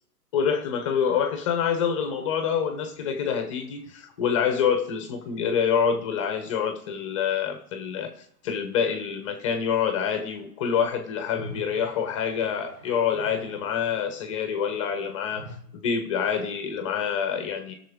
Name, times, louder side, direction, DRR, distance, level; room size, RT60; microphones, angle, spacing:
voice 1, 0.3-15.5 15.7-17.7, left 7 dB, 20° left, 8 dB, 0.6 m, -26 dB
sound 1, 0.9-4.7 5.0-5.1 5.3-5.4 10.4-15.6, right 1 dB, 35° right, 2.2 m, -48 dB
18.5 x 6.5 x 3.5 m, 0.70 s
hypercardioid pair, 145°, 49 cm